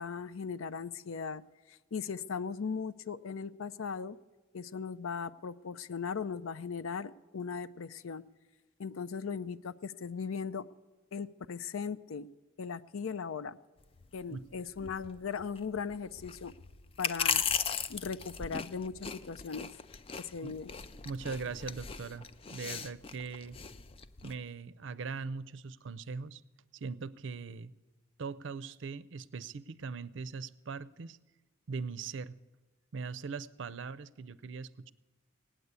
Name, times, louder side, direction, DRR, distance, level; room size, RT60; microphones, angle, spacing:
voice 1, 0.0-1.4 1.7-4.2 4.5-8.2 8.8-10.6 11.1-12.3 12.6-13.6 14.1-16.5 17.0-17.4 17.9-19.7 20.2-20.7, left 5 dB, 80° left, 15 dB, 0.5 m, -38 dB
sound 1, 13.8-24.3, left 6 dB, 25° left, 0.4 m, -38 dB
voice 2, 21.0-23.6 24.2-26.4 26.7-27.7 28.2-31.2 31.7-32.4 32.9-34.9, right 4 dB, 60° right, 17 dB, 0.5 m, -40 dB
18.5 x 9.0 x 8.2 m, 1.2 s
head